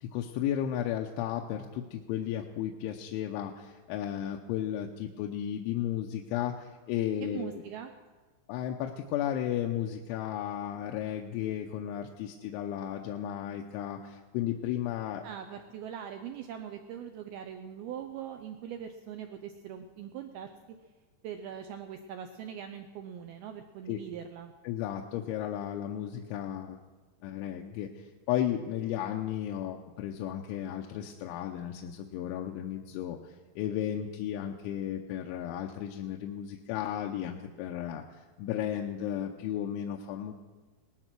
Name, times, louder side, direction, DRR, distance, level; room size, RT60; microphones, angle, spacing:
voice 1, 0.0-7.6 8.5-15.2 23.9-24.0 24.6-26.8 27.2-40.3, left 10 dB, 85° left, 2 dB, 3.2 m, -34 dB
voice 2, 7.2-7.9 15.2-20.5 21.2-24.5, right 9 dB, 85° right, 6 dB, 2.2 m, -41 dB
19.0 x 12.5 x 6.0 m, 1.3 s
omnidirectional pair, 5.4 m